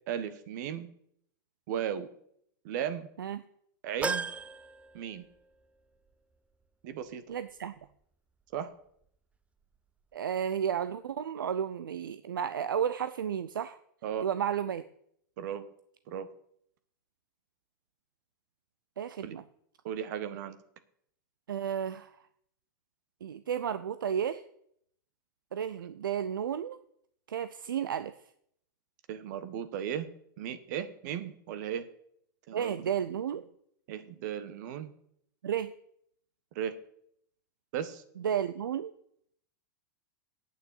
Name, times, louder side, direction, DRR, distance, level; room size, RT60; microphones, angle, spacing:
voice 1, 0.1-0.9 1.7-2.1 2.6-3.1 3.8-4.3 4.9-5.3 6.8-7.2 8.5-8.7 14.0-14.3 15.4-15.6 16.1-16.3 19.2-19.3 19.8-20.6 29.1-30.1 30.4-31.9 32.5-32.8 33.9-34.9 36.5-36.7 37.7-38.0, right 9 dB, 60° right, 11 dB, 1.3 m, -36 dB
sound 1, 4.0-5.7 6.1-6.2 7.4-7.5, right 4 dB, 10° right, 0.6 m, -36 dB
voice 2, 7.3-7.7 10.1-13.8 14.2-14.9 19.0-19.4 21.5-22.1 23.2-24.4 25.5-26.8 27.3-28.2 32.5-33.5 35.4-35.7 38.2-38.9, right 8 dB, 80° right, 13 dB, 0.5 m, -32 dB
8.7 x 7.0 x 8.5 m, 0.68 s
hypercardioid pair, 100°, 11 cm